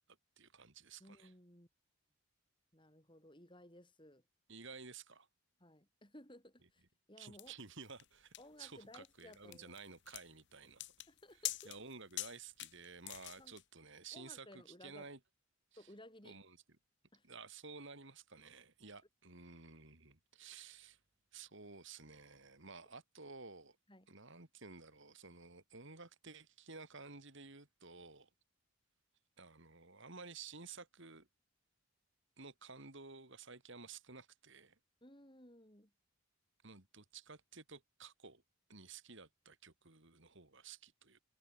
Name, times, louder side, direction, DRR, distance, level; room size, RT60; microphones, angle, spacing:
voice 1, 0.1-1.3 4.5-5.3 7.2-10.9 11.4-15.2 15.8-15.9 16.2-16.6 17.2-21.0 21.3-23.8 24.1-28.3 29.4-31.3 32.4-34.8 36.6-38.4 38.7-41.2, right 4 dB, 55° right, 2.6 m, -53 dB
voice 2, 1.0-1.7 2.7-4.2 5.6-6.8 7.1-7.5 8.4-9.7 11.1-11.7 13.4-13.5 14.1-15.1 15.8-16.4 17.1-17.3 23.9-24.1 35.0-35.9, left 1 dB, 20° left, 7.9 m, -58 dB
sound 1, 7.4-13.6, left 16 dB, 50° left, 1.2 m, -46 dB
head